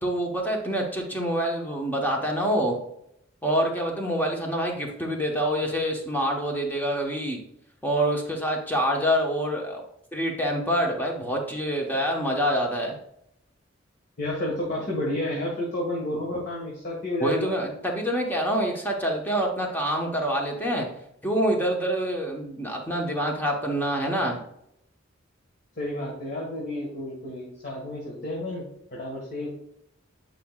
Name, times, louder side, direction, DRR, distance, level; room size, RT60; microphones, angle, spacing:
voice 1, 0.0-2.8 3.4-7.4 7.8-9.8 10.1-12.9 16.1-16.2 17.2-20.9 21.2-24.4, equal, 10° left, 0 dB, 1.1 m, -26 dB
voice 2, 14.2-17.5 25.8-28.7 28.9-29.5, left 1 dB, 50° left, -4 dB, 1.6 m, -30 dB
9.1 x 5.0 x 2.4 m, 0.76 s
head